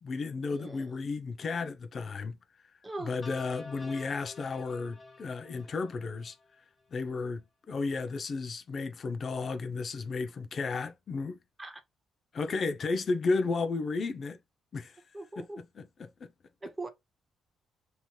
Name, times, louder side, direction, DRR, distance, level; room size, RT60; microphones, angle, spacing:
voice 1, 0.0-2.4 3.0-6.4 6.9-11.4 12.3-14.4 14.7-15.0 15.4-16.1, left 4 dB, 45° left, 0.4 m, -33 dB
voice 2, 0.5-0.9 2.8-3.2 11.6-11.8 12.5-12.6 15.1-15.6 16.6-16.9, right 2 dB, 20° right, 0.7 m, -41 dB
sound 1, 3.2-6.5, left 3 dB, 30° left, 0.9 m, -49 dB
3.0 x 2.8 x 2.2 m
cardioid pair, 90°, 0 cm